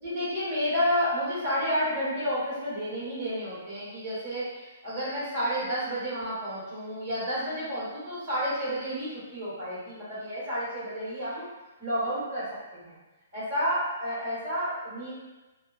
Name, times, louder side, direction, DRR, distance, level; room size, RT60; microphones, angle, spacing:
voice 1, 0.0-11.4 11.8-13.0 13.3-15.1, equal, 40° right, -9 dB, 1.5 m, -30 dB
2.6 x 2.3 x 2.4 m, 1.1 s
figure-of-eight pair, 120°, 0 cm